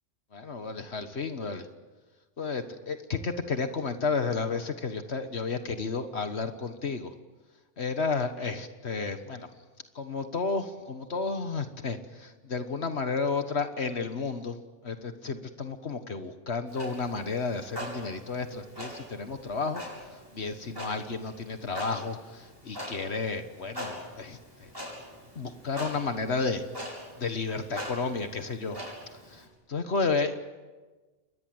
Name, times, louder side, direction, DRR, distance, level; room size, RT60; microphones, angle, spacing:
voice 1, 0.3-1.7 2.4-7.1 7.8-9.5 9.9-14.6 14.8-19.8 20.3-24.7 25.3-26.6 27.2-28.8 29.3-29.4 29.7-30.4, left 4 dB, 60° left, 8 dB, 1.6 m, -32 dB
Clock, 16.7-29.4, equal, 20° right, 7.9 m, -43 dB
29.5 x 22.5 x 7.9 m, 1.3 s
omnidirectional pair, 1.2 m